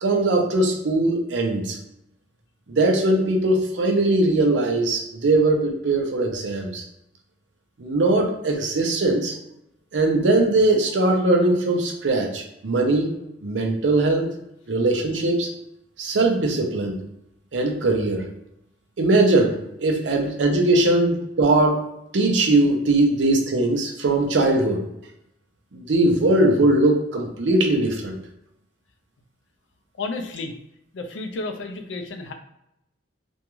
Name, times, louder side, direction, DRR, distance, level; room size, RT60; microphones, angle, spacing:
voice 1, 0.0-1.8 2.7-6.8 7.8-9.3 9.9-13.2 13.4-14.3 14.7-15.5 16.0-17.0 17.5-18.3 19.0-21.8 22.1-24.9 25.7-28.2, right 2 dB, 80° right, 2 dB, 0.6 m, -20 dB
voice 2, 30.0-30.6 30.9-32.3, left 3 dB, 90° left, 5 dB, 0.4 m, -31 dB
2.5 x 2.2 x 3.0 m, 0.82 s
head